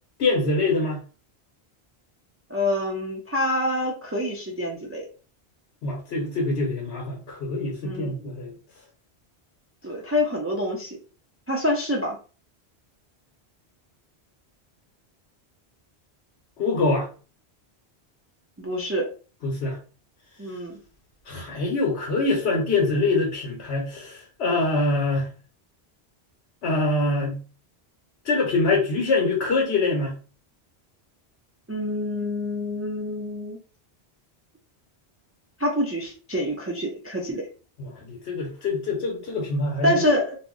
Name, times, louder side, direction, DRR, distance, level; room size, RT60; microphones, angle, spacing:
voice 1, 0.2-1.0 5.8-8.5 16.6-17.1 19.4-19.8 21.2-25.3 26.6-27.4 28.2-30.1 37.8-40.0, left 3 dB, 75° left, -1 dB, 1.1 m, -24 dB
voice 2, 2.5-5.0 7.8-8.1 9.8-11.0 11.5-12.2 18.6-19.1 20.4-20.7 31.7-33.6 35.6-37.5 39.8-40.4, left 1 dB, 25° right, -2 dB, 0.3 m, -26 dB
2.5 x 2.0 x 3.6 m, 0.37 s
omnidirectional pair, 1.1 m